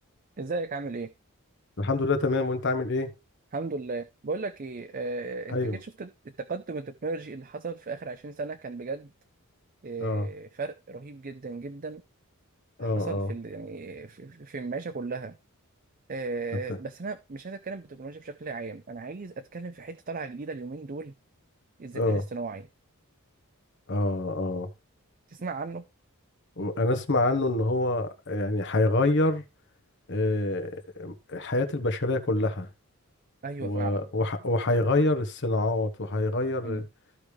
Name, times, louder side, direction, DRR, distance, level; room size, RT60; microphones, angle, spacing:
voice 1, 0.4-1.1 3.5-9.1 9.8-12.0 12.8-15.4 16.1-21.1 21.8-22.7 25.3-25.8 33.4-34.1 36.6-36.8, right 3 dB, 40° right, 0.5 m, -36 dB
voice 2, 1.8-3.1 5.5-5.8 10.0-10.3 12.8-13.3 21.9-22.2 23.9-24.7 26.6-29.4 30.1-32.7 33.6-36.8, left 2 dB, 55° left, 1.1 m, -26 dB
14.0 x 5.0 x 3.2 m
head